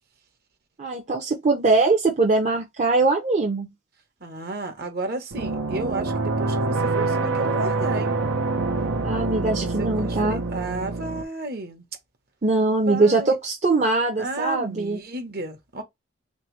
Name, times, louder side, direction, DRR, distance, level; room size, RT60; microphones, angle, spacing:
voice 1, 0.8-3.7 9.0-10.4 12.4-15.0, right 3 dB, 40° right, 0.7 m, -22 dB
voice 2, 4.2-8.2 9.6-11.8 12.9-13.4 14.2-15.8, right 2 dB, 55° right, 1.2 m, -32 dB
sound 1, 5.3-11.2, right 3 dB, 85° right, 0.8 m, -26 dB
3.5 x 3.3 x 3.2 m
head